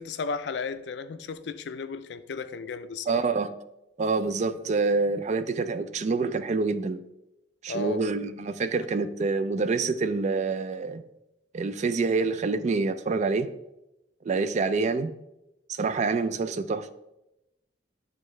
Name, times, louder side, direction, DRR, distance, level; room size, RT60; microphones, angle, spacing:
voice 1, 0.0-3.3 7.7-8.0, left 4 dB, 70° left, 0.4 m, -34 dB
voice 2, 3.1-3.5 4.0-7.0 7.6-11.0 11.5-13.5 14.2-15.1 15.7-16.9, right 4 dB, 40° right, 0.4 m, -27 dB
11.0 x 3.6 x 3.2 m
head